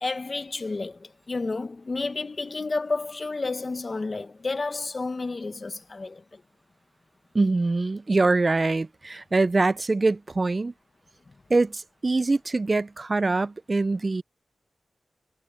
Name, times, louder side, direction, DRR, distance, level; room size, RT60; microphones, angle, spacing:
voice 1, 0.0-6.4 11.3-11.4, left 3 dB, 45° left, 1.0 m, -31 dB
voice 2, 7.3-10.7 11.5-14.2, right 3 dB, 40° right, 0.3 m, -24 dB
wide cardioid pair, 70°, 0 cm